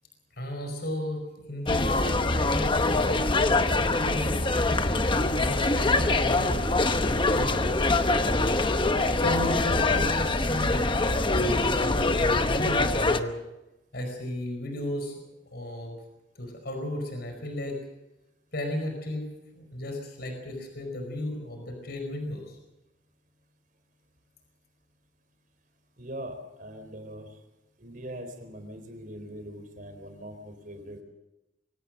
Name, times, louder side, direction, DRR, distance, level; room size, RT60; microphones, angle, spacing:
voice 1, 0.4-1.2 1.5-4.3 5.1-7.7 8.2-8.7 9.2-13.3 13.9-15.1 15.5-16.0 16.4-17.8 18.5-19.2 19.5-22.6, left 1 dB, 60° left, 4 dB, 5.0 m, -34 dB
sound 1, 1.7-13.2, left 2 dB, 25° left, 0.9 m, -24 dB
voice 2, 26.0-27.3 27.8-31.0, equal, 50° right, 7 dB, 4.0 m, -41 dB
23.5 x 17.5 x 6.6 m, 0.97 s
head